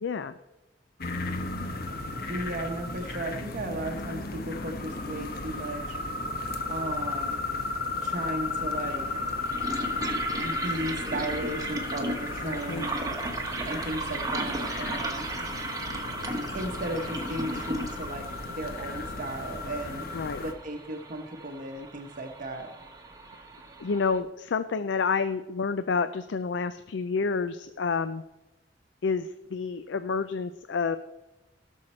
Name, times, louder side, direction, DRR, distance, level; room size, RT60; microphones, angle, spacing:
voice 1, 0.0-0.3 12.4-12.9 20.1-20.4 23.8-28.2 29.0-31.0, left 5 dB, 70° left, 12 dB, 0.4 m, -29 dB
sound 1, 1.0-20.5, left 3 dB, 55° left, 1.0 m, -34 dB
voice 2, 2.3-6.0 6.7-7.4 8.0-9.1 10.4-12.9 13.6-15.3 16.5-18.3 18.5-20.1 20.4-22.7, right 1 dB, 45° right, 2 dB, 0.9 m, -35 dB
sound 2, 8.8-24.2, right 2 dB, 20° right, 1.2 m, -36 dB
17.0 x 6.5 x 4.3 m, 1.0 s
head